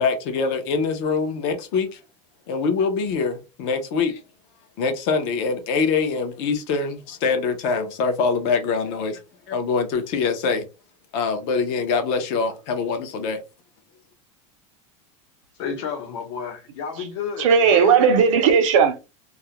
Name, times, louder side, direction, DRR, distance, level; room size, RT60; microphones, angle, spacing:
voice 1, 0.0-2.0 2.5-4.2 4.8-9.2 9.5-10.7 11.1-13.4, left 4 dB, 40° left, 0.5 m, -24 dB
voice 2, 15.6-18.1, left 6 dB, 60° left, 0.8 m, -32 dB
voice 3, 17.4-19.0, right 6 dB, 75° right, 0.7 m, -16 dB
2.3 x 2.0 x 2.8 m
supercardioid pair, 180°, 17 cm